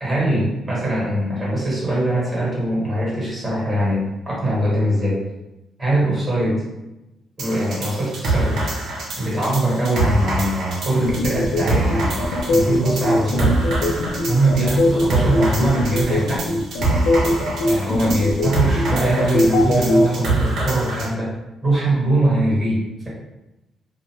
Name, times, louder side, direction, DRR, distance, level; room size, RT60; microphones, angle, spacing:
voice 1, 0.0-5.2 5.8-6.6 7.4-8.6 9.2-12.2 12.5-13.6 14.2-16.6 17.6-21.3 21.6-23.1, right 1 dB, 25° right, -6 dB, 1.4 m, -21 dB
sound 1, 7.4-21.1, right 2 dB, 65° right, 0.7 m, -25 dB
sound 2, 11.0-20.0, left 2 dB, 80° left, 0.3 m, -20 dB
2.4 x 2.3 x 2.9 m, 0.98 s
cardioid pair, 90°, 0 cm